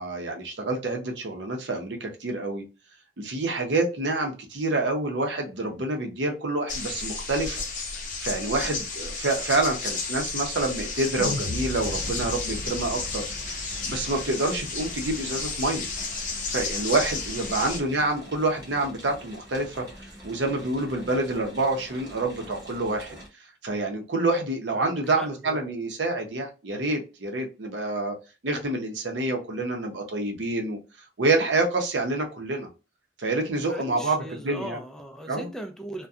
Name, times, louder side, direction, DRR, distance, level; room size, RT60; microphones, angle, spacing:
voice 1, 0.0-2.6 3.2-7.6 8.2-15.9 16.5-19.9 20.2-23.2 23.6-28.1 28.4-30.8 31.2-32.7 33.2-34.8 35.3-35.5, right 2 dB, 70° right, 0.7 m, -27 dB
sound 1, 6.7-17.8, left 4 dB, 45° left, 0.6 m, -32 dB
sound 2, 11.2-15.5, left 1 dB, 85° left, 0.6 m, -37 dB
sound 3, 11.9-23.3, equal, 20° right, 0.9 m, -46 dB
voice 2, 24.7-25.6 33.6-36.1, right 1 dB, 5° left, 0.4 m, -39 dB
2.6 x 2.2 x 2.3 m
head